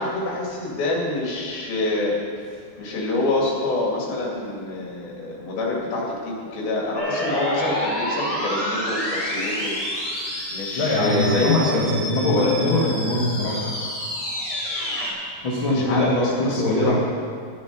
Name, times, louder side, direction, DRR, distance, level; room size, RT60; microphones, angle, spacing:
voice 1, 0.0-2.2 2.8-9.7 10.5-11.9 12.3-12.9 15.7-16.9, left 2 dB, 75° left, -3 dB, 4.3 m, -26 dB
sound 1, 7.0-15.1, equal, 15° left, 2.5 m, -28 dB
voice 2, 10.7-13.6 15.4-16.9, left 2 dB, 45° left, -5 dB, 1.7 m, -22 dB
11.5 x 11.0 x 5.4 m, 2.2 s
omnidirectional pair, 4.3 m